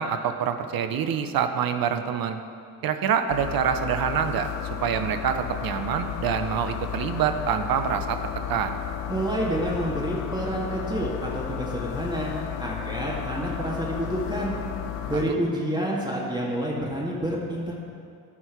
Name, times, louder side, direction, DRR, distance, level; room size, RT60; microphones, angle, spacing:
voice 1, 0.0-2.4 2.8-4.5 4.8-8.2 8.5-8.8 15.1-15.4, right 8 dB, 50° right, 8 dB, 0.8 m, -26 dB
sound 1, 3.3-15.2, left 10 dB, 85° left, 0.7 m, -33 dB
voice 2, 9.1-12.3 12.6-14.6 15.1-17.7, equal, 10° right, -5 dB, 2.0 m, -28 dB
12.5 x 4.4 x 5.9 m, 2.4 s
hypercardioid pair, 55°, 46 cm